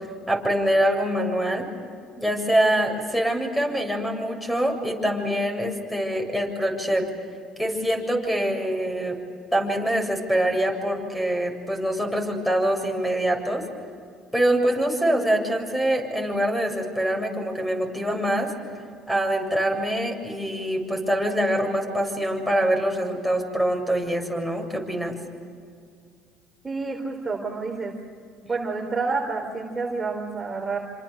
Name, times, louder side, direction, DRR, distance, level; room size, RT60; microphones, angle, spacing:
voice 1, 0.3-1.7 2.2-7.1 7.6-9.2 9.5-13.6 14.3-18.5 19.1-25.2, right 1 dB, ahead, 4 dB, 7.4 m, -24 dB
voice 2, 26.6-28.0 28.4-30.8, right 4 dB, 20° right, 1 dB, 3.7 m, -29 dB
27.5 x 26.5 x 6.6 m, 2.2 s
supercardioid pair, 75°, 0 cm